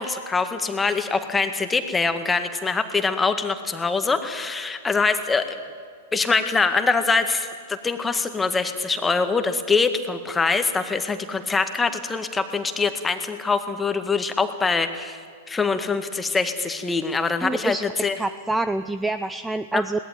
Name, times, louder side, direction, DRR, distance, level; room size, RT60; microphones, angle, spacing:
voice 1, 0.0-5.6 6.1-15.2 15.5-18.2 19.7-19.8, left 4 dB, 15° left, 8 dB, 1.9 m, -24 dB
voice 2, 17.4-17.8 18.2-20.0, right 2 dB, 5° right, 13 dB, 0.6 m, -26 dB
21.0 x 18.0 x 9.4 m, 2.1 s
figure-of-eight pair, 105°, 0 cm